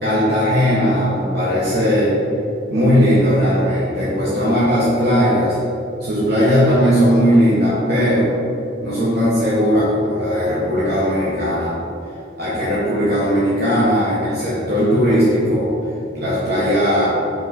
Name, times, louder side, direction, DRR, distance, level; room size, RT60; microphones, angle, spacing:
voice 1, 0.0-2.1 2.7-5.6 6.0-8.3 8.8-11.8 12.4-15.7 16.1-17.2, equal, 55° right, -9 dB, 1.2 m, -17 dB
5.9 x 4.9 x 4.2 m, 2.8 s
head